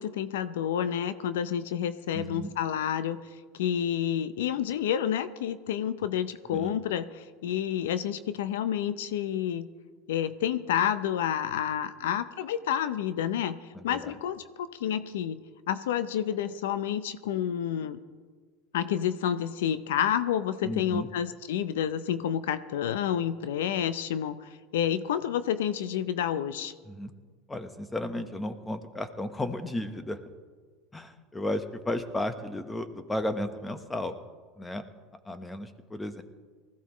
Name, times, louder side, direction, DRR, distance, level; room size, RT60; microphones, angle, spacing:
voice 1, 0.0-3.2 3.6-7.1 7.4-9.7 10.1-13.6 13.8-15.4 15.7-18.0 18.7-26.7, left 9 dB, 85° left, 13 dB, 0.6 m, -29 dB
voice 2, 2.1-2.5 6.5-6.7 13.7-14.1 20.6-21.1 26.9-27.1 27.5-30.2 30.9-34.2 34.6-34.8 35.2-36.2, left 1 dB, 10° left, 9 dB, 1.1 m, -34 dB
19.5 x 15.0 x 3.1 m, 1.5 s
supercardioid pair, 110°, 0 cm